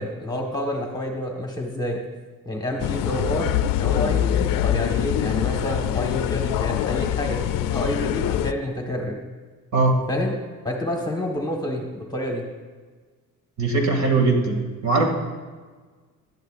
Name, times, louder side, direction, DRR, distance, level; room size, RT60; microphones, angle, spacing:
voice 1, 0.0-2.0 2.4-3.5 3.8-9.2 10.1-10.3 10.6-12.5, left 1 dB, 10° left, 0 dB, 1.3 m, -28 dB
sound 1, 2.8-8.5, left 11 dB, 80° left, 0.5 m, -24 dB
voice 2, 13.6-15.1, right 3 dB, 55° right, 2 dB, 2.3 m, -20 dB
17.5 x 12.0 x 2.5 m, 1.4 s
cardioid pair, 160°, 33 cm